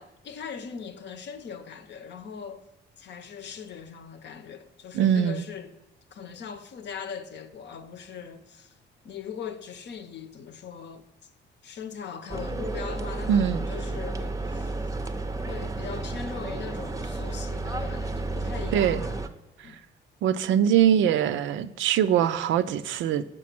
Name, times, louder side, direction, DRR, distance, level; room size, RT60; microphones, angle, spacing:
voice 1, 0.0-2.7 3.0-5.8 6.1-8.8 9.0-11.3 11.6-14.7 15.4-19.2 19.6-19.8, left 7 dB, 60° left, 0.7 m, -40 dB
voice 2, 4.9-5.4 13.3-13.6 18.7-19.0 20.2-23.2, right 9 dB, 75° right, 0.4 m, -22 dB
sound 1, 12.3-19.3, right 2 dB, 15° right, 0.5 m, -32 dB
6.1 x 5.1 x 5.9 m
cardioid pair, 90°, 20 cm